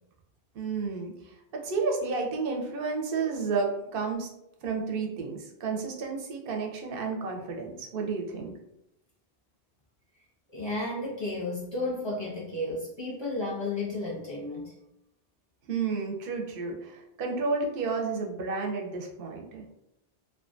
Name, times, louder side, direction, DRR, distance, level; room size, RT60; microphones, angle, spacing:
voice 1, 0.5-1.1 1.6-4.3 4.6-8.5 15.7-19.6, right 4 dB, 65° right, 1 dB, 0.7 m, -31 dB
voice 2, 10.5-14.7, left 2 dB, 35° left, -5 dB, 0.5 m, -33 dB
2.4 x 2.2 x 2.5 m, 0.85 s
omnidirectional pair, 1.1 m